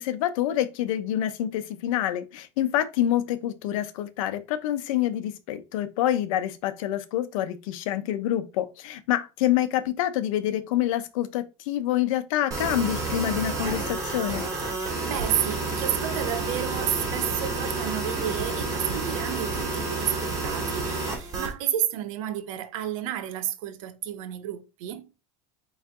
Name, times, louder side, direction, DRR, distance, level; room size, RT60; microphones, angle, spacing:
voice 1, 0.0-14.4, left 12 dB, 85° left, 0.8 m, -27 dB
sound 1, 12.5-21.5, right 3 dB, 20° right, 2.2 m, -30 dB
voice 2, 14.7-25.1, right 11 dB, 85° right, 0.8 m, -31 dB
4.5 x 3.2 x 3.6 m
supercardioid pair, 125°, 17 cm